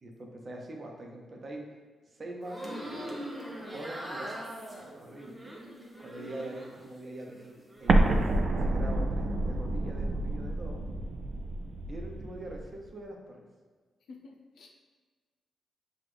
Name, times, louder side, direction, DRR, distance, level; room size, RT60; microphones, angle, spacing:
voice 1, 0.0-1.6 2.1-2.8 3.7-4.3 4.8-5.6 6.0-8.2 8.6-10.8 11.9-13.5, right 1 dB, 40° right, 1 dB, 0.8 m, -43 dB
sound 1, 2.4-6.8 7.2-7.9, equal, 10° right, 0.9 m, -42 dB
Explosion, 7.9-12.6, right 2 dB, 60° right, 0.4 m, -28 dB
voice 2, 14.1-14.8, left 4 dB, 80° left, 2 dB, 0.6 m, -50 dB
5.9 x 2.5 x 3.4 m, 1.4 s
cardioid pair, 80°, 0 cm